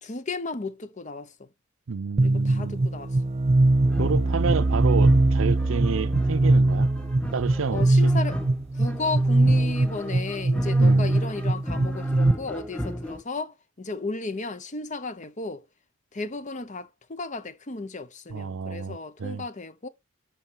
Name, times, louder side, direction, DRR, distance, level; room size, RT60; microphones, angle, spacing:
voice 1, 0.0-1.5 2.2-3.2 7.7-8.4 8.8-15.6 16.1-19.9, left 3 dB, 40° left, 0.8 m, -34 dB
voice 2, 1.9-2.8 4.0-6.9 7.3-8.1 10.8-11.2 18.3-19.5, right 5 dB, 75° right, 0.6 m, -30 dB
sound 1, 2.2-12.3, right 2 dB, 30° right, 0.5 m, -21 dB
sound 2, 3.8-13.2, equal, 5° left, 1.2 m, -36 dB
11.5 x 4.2 x 4.6 m
head